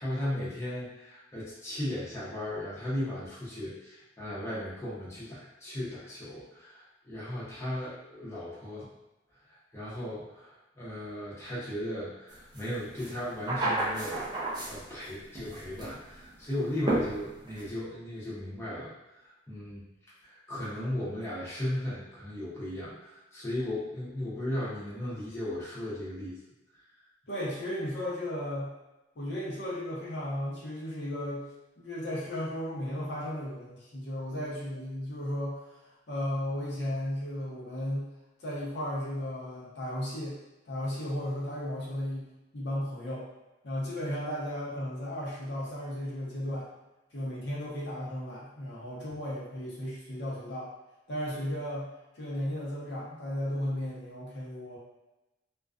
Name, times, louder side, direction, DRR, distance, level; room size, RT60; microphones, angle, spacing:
voice 1, 0.0-8.9 9.5-19.8 20.2-26.4, left 1 dB, 15° left, -9 dB, 0.6 m, -36 dB
sound 1, 12.6-12.7 13.0-15.1 15.4-16.0 16.9-17.6, right 2 dB, 25° right, 0.4 m, -31 dB
voice 2, 27.3-28.7 29.1-31.4 31.8-38.1 38.4-40.4 40.6-43.3 43.6-46.7 47.1-50.7 51.1-51.9 52.1-54.8, left 1 dB, 65° left, -6 dB, 0.7 m, -35 dB
2.4 x 2.2 x 2.4 m, 1.0 s
head